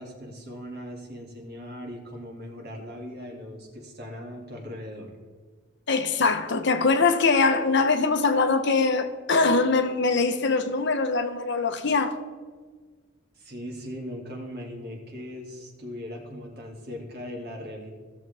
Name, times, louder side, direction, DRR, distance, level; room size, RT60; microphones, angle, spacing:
voice 1, 0.0-5.1 13.4-17.9, equal, 50° right, 2.4 m, -39 dB
voice 2, 5.9-12.2, left 4 dB, 60° left, 0.9 m, -22 dB
16.0 x 6.8 x 3.4 m
head